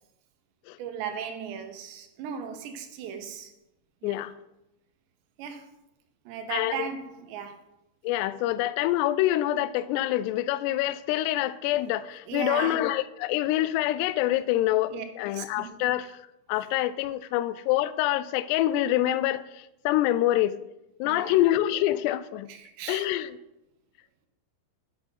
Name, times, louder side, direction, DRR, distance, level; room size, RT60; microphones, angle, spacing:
voice 1, 0.8-3.5 4.0-4.2 5.4-5.7 6.3-7.6 12.3-12.9 14.9-15.1 15.3-15.8 21.0-21.4 22.5-23.1, right 8 dB, 80° right, 3.2 m, -37 dB
voice 2, 8.0-16.1 16.5-19.4 19.9-20.6 21.0-22.5 22.9-23.3, left 14 dB, 85° left, 2.5 m, -26 dB
7.7 x 7.5 x 5.8 m
omnidirectional pair, 5.1 m